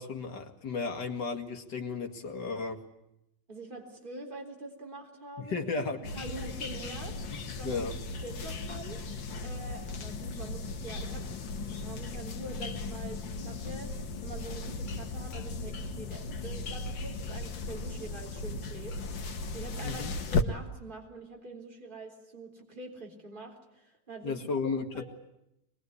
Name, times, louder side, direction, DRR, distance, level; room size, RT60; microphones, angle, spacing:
voice 1, 0.0-2.8 5.4-6.0 7.3-7.9 19.8-20.1 24.2-25.0, left 4 dB, 65° left, 4 dB, 2.8 m, -34 dB
voice 2, 3.5-5.6 6.1-7.9 8.2-9.1 9.4-11.3 11.7-25.0, right 2 dB, 25° right, 1 dB, 3.9 m, -45 dB
sound 1, 6.0-20.4, left 3 dB, 90° left, 2.1 m, -36 dB
23.5 x 21.5 x 9.7 m, 0.85 s
omnidirectional pair, 2.0 m